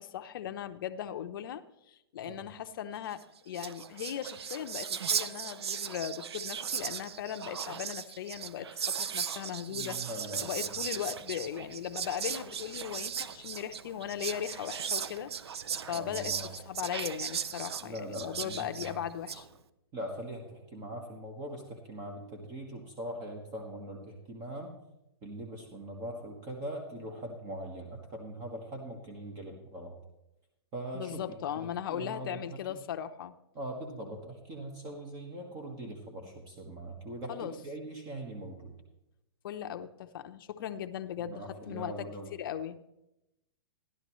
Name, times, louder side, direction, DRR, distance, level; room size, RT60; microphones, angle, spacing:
voice 1, 0.0-10.1 10.4-15.3 15.9-16.4 16.6-19.5 30.9-33.3 37.3-37.5 39.4-42.8, left 9 dB, 60° left, 8 dB, 0.7 m, -38 dB
Whispering, 3.2-3.3 3.5-19.4, right 7 dB, 85° right, 0.5 m, -37 dB
voice 2, 9.7-10.6 15.9-16.5 17.8-19.0 19.9-24.8 25.2-29.9 30.7-31.2 31.5-32.8 33.5-38.7 41.2-42.3, right 1 dB, 30° right, 2 dB, 1.4 m, -41 dB
sound 1, 10.3-19.6, right 2 dB, 55° right, 2.2 m, -59 dB
14.0 x 11.5 x 3.1 m, 0.89 s
hypercardioid pair, 140°, 13 cm